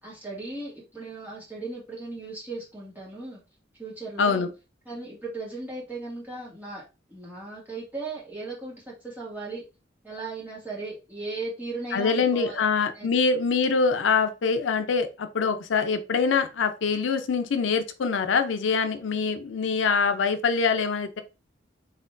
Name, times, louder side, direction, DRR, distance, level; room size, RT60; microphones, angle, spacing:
voice 1, 0.0-3.4 3.8-4.5 4.9-6.8 7.1-9.6 10.0-12.6 12.9-13.1, right 3 dB, 10° right, 2.1 m, -37 dB
voice 2, 4.2-4.5 11.9-21.2, left 5 dB, 80° left, 0.5 m, -24 dB
4.2 x 3.6 x 2.6 m
head